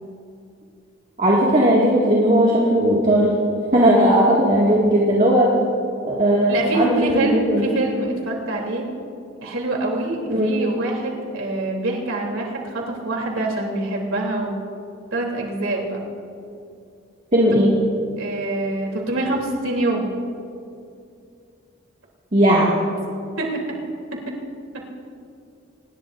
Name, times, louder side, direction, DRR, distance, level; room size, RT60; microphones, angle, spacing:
voice 1, 1.2-3.3 3.7-5.5 6.0-7.7 10.3-10.5 17.3-17.7 22.3-22.8, equal, 35° right, -4 dB, 2.2 m, -17 dB
voice 2, 6.5-8.9 9.4-14.6 15.1-16.0 18.2-20.0 23.4-23.6, right 2 dB, 80° right, -1 dB, 3.4 m, -25 dB
27.0 x 20.0 x 2.7 m, 2.6 s
head